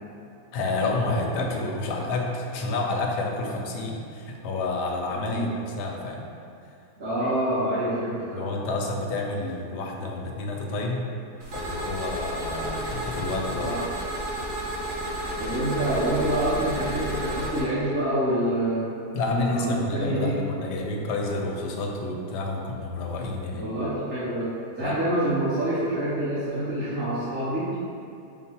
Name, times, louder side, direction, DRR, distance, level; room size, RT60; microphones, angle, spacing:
voice 1, 0.5-6.3 7.2-7.3 8.3-11.1 11.5-13.7 19.1-23.7 24.8-25.0, left 2 dB, 85° left, 1 dB, 1.2 m, -29 dB
voice 2, 5.1-5.4 7.0-8.5 13.6-13.8 15.4-18.9 19.3-20.4 23.5-24.5 24.8-27.8, right 1 dB, 40° right, -13 dB, 1.1 m, -26 dB
sound 1, 11.4-17.6, right 1 dB, 55° right, 1.2 m, -32 dB
6.0 x 2.0 x 4.1 m, 2.6 s
omnidirectional pair, 1.8 m